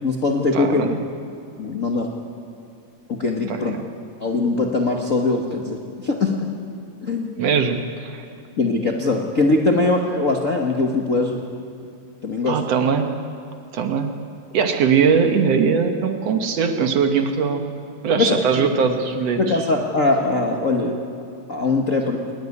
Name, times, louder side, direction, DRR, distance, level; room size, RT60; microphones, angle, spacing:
voice 1, 0.0-1.0 1.6-2.1 3.1-3.8 4.2-6.5 7.0-7.4 8.6-11.4 12.2-12.6 18.2-18.7 19.4-21.0 21.5-22.2, left 3 dB, 45° left, 1 dB, 1.0 m, -21 dB
voice 2, 0.5-1.0 3.5-3.8 7.4-8.2 12.5-13.1 13.7-14.1 14.5-17.6 18.0-19.4, right 6 dB, 60° right, 5 dB, 2.1 m, -20 dB
20.5 x 19.5 x 9.7 m, 2.5 s
omnidirectional pair, 3.5 m